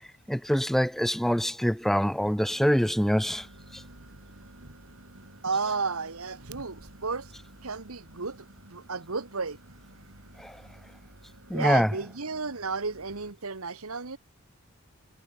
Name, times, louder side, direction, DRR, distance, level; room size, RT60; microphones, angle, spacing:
voice 1, 0.3-3.5 3.7-3.8 10.4-10.6 11.5-11.9, equal, ahead, 0.6 m, -25 dB
sound 1, 2.5-13.3, right 1 dB, 65° right, 7.2 m, -52 dB
voice 2, 5.1-7.3 7.6-9.6 11.5-14.2, right 4 dB, 85° right, 1.6 m, -33 dB
head